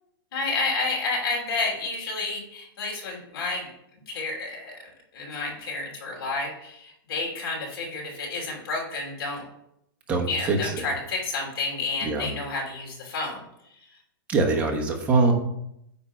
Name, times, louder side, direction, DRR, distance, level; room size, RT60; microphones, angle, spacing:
voice 1, 0.3-3.7 4.1-4.8 5.1-9.4 10.3-13.4, left 3 dB, 85° left, -1 dB, 2.9 m, -30 dB
voice 2, 10.1-10.7 12.0-12.3 14.3-15.3, right 3 dB, 10° right, 0 dB, 1.0 m, -23 dB
9.4 x 3.6 x 5.7 m, 0.78 s
supercardioid pair, 170°, 12 cm